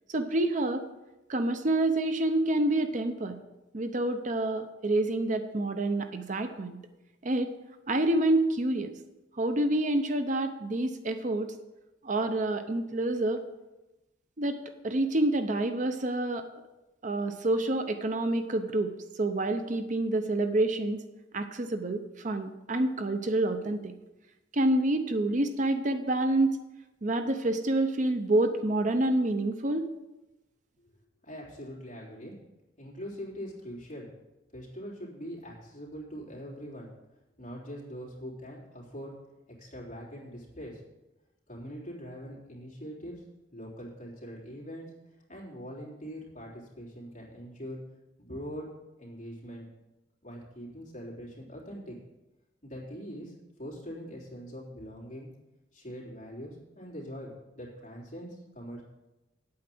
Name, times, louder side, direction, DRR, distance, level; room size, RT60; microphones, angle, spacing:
voice 1, 0.1-0.9 1.3-3.4 3.7-6.8 7.2-7.5 7.9-8.9 9.4-11.5 12.0-13.4 14.4-16.5 17.0-18.9 19.2-21.0 21.3-23.9 24.5-26.6 27.0-29.9, right 2 dB, 45° right, 8 dB, 0.7 m, -28 dB
voice 2, 31.2-32.3 32.8-34.1 34.5-36.9 37.4-39.1 39.6-40.8 41.5-43.2 43.5-44.9 45.3-47.8 48.2-48.7 49.0-49.7 50.2-52.0 52.6-53.3 53.6-55.3 55.7-58.8, equal, 40° left, -4 dB, 3.4 m, -42 dB
8.9 x 8.6 x 6.0 m, 1.0 s
head